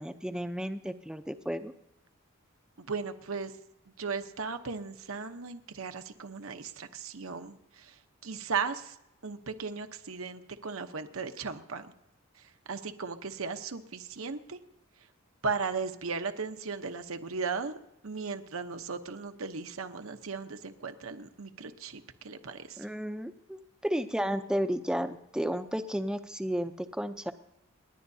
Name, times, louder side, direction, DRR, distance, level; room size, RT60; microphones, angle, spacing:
voice 1, 0.0-1.7 22.8-27.3, equal, 5° right, 8 dB, 0.6 m, -33 dB
voice 2, 2.8-3.5 4.0-9.0 9.2-11.9 12.4-14.6 15.4-22.9, right 5 dB, 75° right, 8 dB, 0.9 m, -37 dB
29.5 x 11.0 x 2.8 m, 0.85 s
head